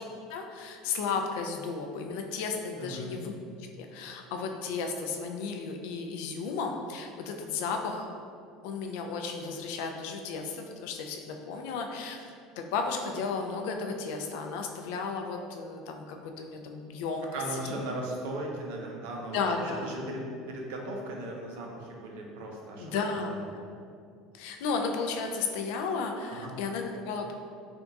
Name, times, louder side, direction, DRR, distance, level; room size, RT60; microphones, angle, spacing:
voice 1, 0.3-3.3 3.8-8.1 8.6-17.3 17.7-17.8 19.3-20.1 22.8-23.6 24.3-27.3, left 4 dB, 75° left, 4 dB, 0.4 m, -34 dB
voice 2, 2.8-3.1 17.3-23.5 26.3-26.6, right 1 dB, 85° right, 0 dB, 0.6 m, -38 dB
3.5 x 2.3 x 3.9 m, 2.4 s
cardioid pair, 165°, 0 cm